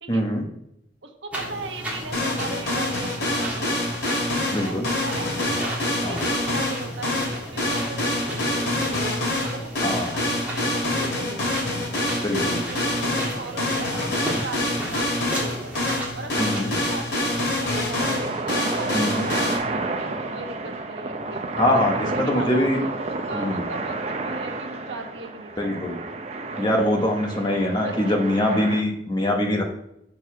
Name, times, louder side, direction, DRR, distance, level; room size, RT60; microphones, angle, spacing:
voice 1, 0.1-0.5 4.5-4.9 6.0-6.2 9.8-10.1 12.2-12.6 16.4-16.8 18.9-19.3 21.6-22.8 23.3-23.6 25.6-26.0 26.6-29.6, left 1 dB, 25° left, 2 dB, 1.0 m, -23 dB
voice 2, 1.0-3.9 4.4-11.8 12.2-15.7 16.1-22.7 23.1-26.0 27.7-28.2, right 2 dB, 85° right, 4 dB, 1.2 m, -38 dB
sound 1, 1.3-18.0, right 1 dB, 10° right, 1.7 m, -35 dB
sound 2, 2.1-19.6, left 1 dB, 70° left, 2.6 m, -26 dB
sound 3, 18.0-28.8, right 2 dB, 35° right, 0.6 m, -30 dB
6.5 x 4.6 x 5.7 m, 0.80 s
head